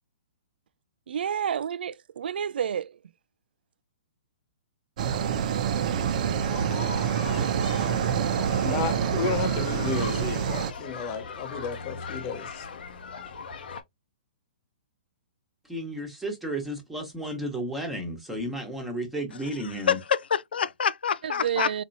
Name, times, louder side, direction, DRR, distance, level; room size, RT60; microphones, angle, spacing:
voice 1, 1.1-3.0 21.2-21.8, right 8 dB, 75° right, 0.3 m, -30 dB
sound 1, 5.0-10.7, right 8 dB, 50° right, 0.7 m, -26 dB
sound 2, 6.4-13.8, left 5 dB, 70° left, 0.9 m, -40 dB
voice 2, 8.6-12.7, left 6 dB, 30° left, 0.9 m, -32 dB
voice 3, 15.7-20.0, right 1 dB, 5° right, 1.1 m, -33 dB
voice 4, 19.6-21.8, left 7 dB, 85° left, 0.4 m, -27 dB
4.2 x 2.9 x 2.7 m
hypercardioid pair, 155°, 5 cm